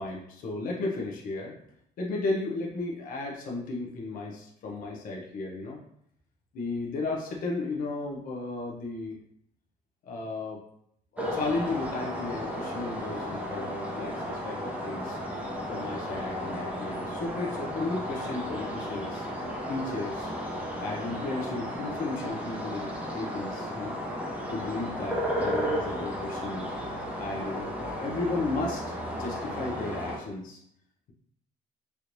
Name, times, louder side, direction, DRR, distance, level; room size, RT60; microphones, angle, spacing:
voice 1, 0.0-1.6 2.0-5.8 6.5-9.2 10.0-10.6 11.1-15.2 15.7-19.3 19.7-20.3 20.8-24.0 24.5-26.7 27.2-30.6, left 3 dB, 55° left, -2 dB, 0.7 m, -34 dB
sound 1, 11.2-30.2, equal, 10° right, 0.7 m, -34 dB
3.2 x 2.9 x 2.6 m, 0.71 s
cardioid pair, 110°, 17 cm